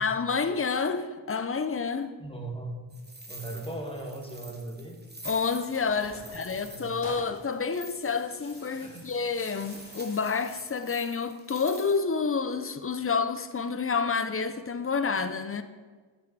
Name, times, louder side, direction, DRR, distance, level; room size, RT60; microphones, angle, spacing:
voice 1, 0.0-2.2 5.2-15.6, left 5 dB, 30° left, 0.5 m, -29 dB
voice 2, 2.2-2.8 3.3-5.0 6.1-7.0 8.7-9.0, right 2 dB, 10° left, 1.3 m, -39 dB
sound 1, 2.9-12.0, right 2 dB, 20° right, 0.9 m, -48 dB
Tearing, 5.3-10.6, left 2 dB, 55° left, 1.5 m, -49 dB
8.5 x 5.3 x 4.1 m
wide cardioid pair, 45°, 49 cm